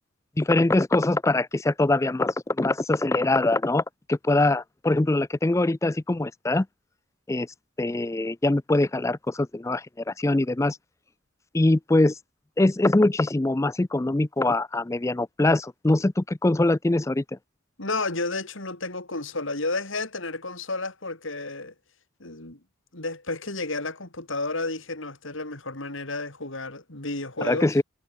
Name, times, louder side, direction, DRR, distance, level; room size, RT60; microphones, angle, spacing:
voice 1, 0.4-3.8 4.1-6.7 7.3-7.5 7.8-10.8 11.5-12.2 12.6-17.2 27.4-27.8, left 2 dB, 15° left, 0.4 m, -23 dB
voice 2, 17.8-21.7 22.2-22.6 22.9-27.8, left 3 dB, 70° left, 4.0 m, -32 dB
head